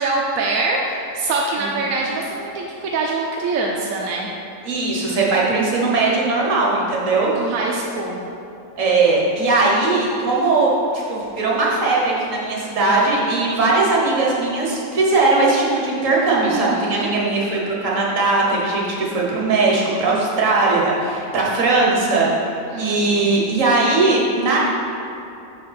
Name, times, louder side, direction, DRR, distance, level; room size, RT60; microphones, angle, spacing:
voice 1, 0.0-4.3 7.4-8.2 16.4-17.1 22.7-23.4, right 3 dB, 65° right, -1 dB, 0.9 m, -24 dB
voice 2, 4.6-7.3 8.8-10.7 10.9-22.3 22.8-24.6, right 3 dB, 50° right, -4 dB, 1.5 m, -19 dB
5.5 x 5.3 x 5.7 m, 2.7 s
omnidirectional pair, 1.9 m